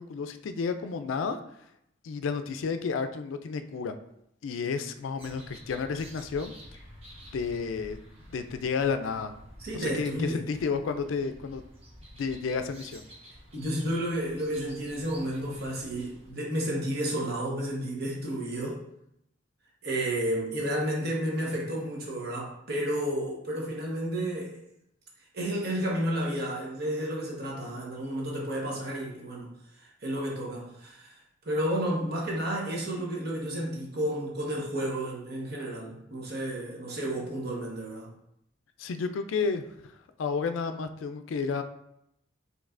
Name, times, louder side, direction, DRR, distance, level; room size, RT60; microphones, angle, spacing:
voice 1, 0.0-1.4 2.0-4.0 4.4-6.5 7.3-8.0 8.3-9.3 9.7-11.6 12.1-13.1 38.8-39.9 40.2-41.6, left 5 dB, 75° left, 9 dB, 0.4 m, -31 dB
sound 1, 5.2-16.3, equal, 30° right, 1.0 m, -50 dB
voice 2, 9.6-10.4 13.5-18.8 19.8-24.6 25.3-29.5 29.8-31.1 31.4-38.1, right 1 dB, 55° right, -2 dB, 1.1 m, -31 dB
5.2 x 3.2 x 2.5 m, 0.77 s
head